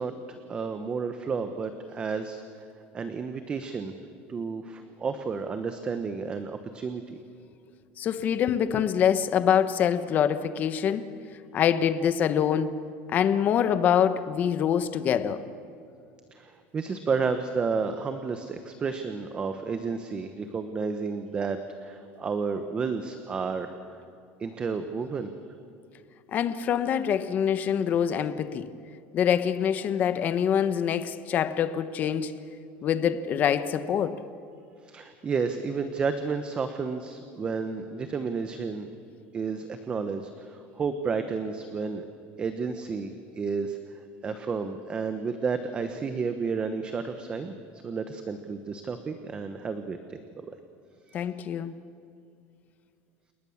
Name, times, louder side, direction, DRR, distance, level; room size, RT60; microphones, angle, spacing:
voice 1, 0.0-2.7 2.9-3.9 4.3-7.2 16.3-23.8 24.4-25.3 34.8-38.9 39.3-42.0 42.4-47.5 47.8-50.2 51.1-51.2, right 5 dB, 20° right, 1.0 m, -31 dB
voice 2, 8.0-11.1 11.5-12.8 13.1-15.5 26.3-28.7 29.1-32.3 32.8-34.2 51.1-51.7, left 8 dB, 30° left, 1.0 m, -25 dB
29.5 x 19.5 x 7.2 m
cardioid pair, 165°, 5 cm